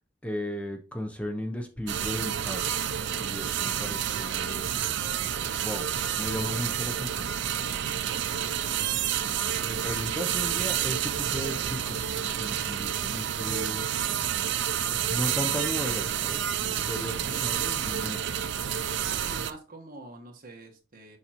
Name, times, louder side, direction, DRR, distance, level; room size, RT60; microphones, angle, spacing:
voice 1, 0.2-2.6 3.2-4.8 5.4-7.3 7.8-8.2 9.5-13.9 15.1-18.4, left 1 dB, 5° left, 0.6 m, -36 dB
sound 1, 1.9-19.5, right 9 dB, 65° right, 0.4 m, -29 dB
voice 2, 8.1-8.5 16.5-17.1 19.2-21.2, right 2 dB, 50° right, 1.3 m, -47 dB
6.9 x 5.5 x 2.9 m
head